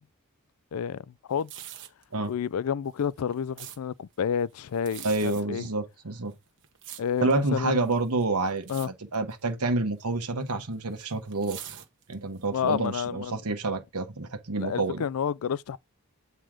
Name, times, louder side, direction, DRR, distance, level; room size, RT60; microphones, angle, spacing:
voice 1, 0.7-1.5 2.3-5.7 7.0-7.9 8.7-8.9 12.5-13.4 14.6-15.8, left 7 dB, 70° left, 0.4 m, -30 dB
sound 1, 1.3-2.0 2.9-3.8 4.7-5.4 6.3-7.4 7.9-8.2 8.6-8.9 9.1-9.4 10.3-12.4 12.9-13.0, right 11 dB, 55° right, 1.0 m, -43 dB
voice 2, 5.0-6.3 7.2-11.6 12.1-15.0, right 3 dB, 85° right, 1.2 m, -28 dB
7.5 x 3.1 x 4.9 m
head